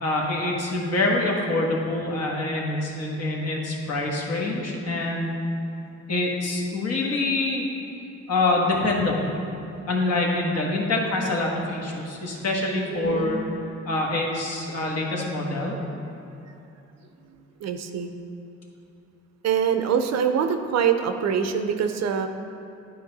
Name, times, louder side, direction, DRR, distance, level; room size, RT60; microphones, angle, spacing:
voice 1, 0.0-5.3 6.1-7.6 8.3-9.3 9.9-13.4 13.8-15.8, left 2 dB, 55° left, -1 dB, 1.4 m, -25 dB
voice 2, 12.9-13.4 17.6-18.1 19.4-22.3, right 7 dB, 60° right, 7 dB, 0.6 m, -24 dB
10.0 x 4.3 x 4.0 m, 2.9 s
cardioid pair, 90°, 30 cm